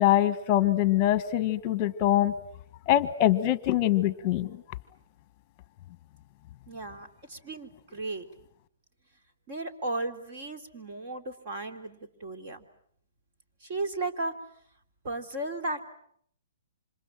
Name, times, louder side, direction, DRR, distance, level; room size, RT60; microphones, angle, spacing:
voice 1, 0.0-2.3 2.9-4.6, left 13 dB, 30° left, 15 dB, 1.4 m, -24 dB
voice 2, 6.7-8.3 9.5-12.6 13.6-14.3 15.0-15.9, right 2 dB, 40° right, 5 dB, 3.4 m, -35 dB
29.0 x 26.5 x 7.6 m, 0.66 s
hypercardioid pair, 160°, 0 cm